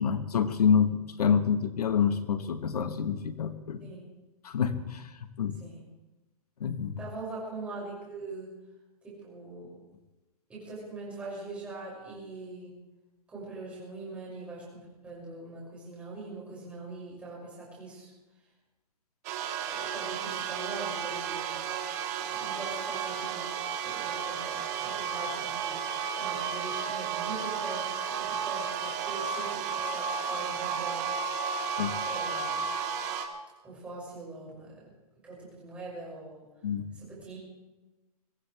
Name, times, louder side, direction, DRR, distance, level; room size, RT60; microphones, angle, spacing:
voice 1, 0.0-3.8 4.4-5.1 5.4-5.6 6.6-7.0 31.8-32.0 36.6-36.8, left 7 dB, 80° left, 8 dB, 1.4 m, -27 dB
voice 2, 7.0-8.5 9.0-9.8 10.5-12.7 13.3-18.1 19.7-21.7 22.3-31.1 32.0-32.7 33.6-34.9 35.2-36.4 36.9-37.4, right 2 dB, 5° right, -6 dB, 6.3 m, -42 dB
sound 1, 19.2-33.2, right 6 dB, 25° right, 1.6 m, -33 dB
24.0 x 16.5 x 3.4 m, 1.1 s
hypercardioid pair, 170°, 20 cm